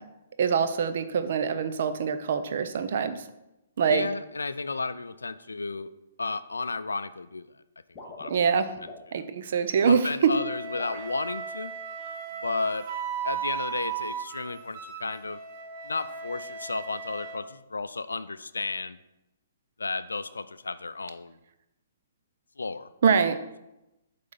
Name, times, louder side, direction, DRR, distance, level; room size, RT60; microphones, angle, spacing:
voice 1, 0.4-3.2 3.8-4.1 8.3-8.7 9.1-10.3 23.0-23.4, right 6 dB, 55° right, 10 dB, 0.6 m, -24 dB
voice 2, 3.9-5.9 6.2-7.5 8.2-8.3 9.1-9.3 9.9-11.7 12.4-12.9 13.2-15.4 15.8-19.0 19.8-21.4 22.6-22.9, left 3 dB, 80° left, 13 dB, 0.3 m, -33 dB
sound 1, 7.9-9.0 9.7-10.1 10.7-11.1, left 2 dB, 25° left, 1.9 m, -44 dB
Wind instrument woodwind instrument, 10.3-17.4, right 7 dB, 40° right, 1.1 m, -36 dB
8.2 x 3.4 x 5.5 m, 0.92 s
figure-of-eight pair, 125°, 0 cm